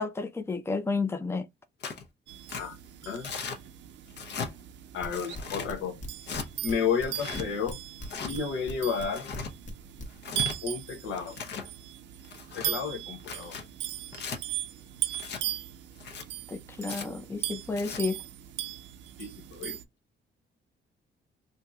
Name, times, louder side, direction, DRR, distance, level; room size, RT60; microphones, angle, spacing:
voice 1, 0.0-1.5 16.5-18.2, left 4 dB, 10° left, 0.5 m, -31 dB
Tearing, 1.8-2.0 2.5-2.6 3.2-3.6 4.1-4.5 5.1-5.7 6.2-6.5 7.1-7.5 8.0-8.3 9.0-9.5 10.1-10.6 11.1-11.7 12.2-12.7 13.2-13.6 14.1-14.4 15.1-15.4 16.0-16.2 16.8-17.1 17.6-18.0, left 5 dB, 60° left, 0.8 m, -37 dB
sound 1, 2.3-19.8, right 13 dB, 65° right, 0.5 m, -39 dB
voice 2, 4.9-6.0 6.6-7.8 8.2-9.3 10.6-11.4 12.5-13.6 19.2-19.8, left 6 dB, 90° left, 0.8 m, -32 dB
sound 2, 5.0-6.7 7.0-8.7 9.0-10.1, equal, 40° left, 1.0 m, -40 dB
3.5 x 2.8 x 2.3 m
cardioid pair, 90°, 20 cm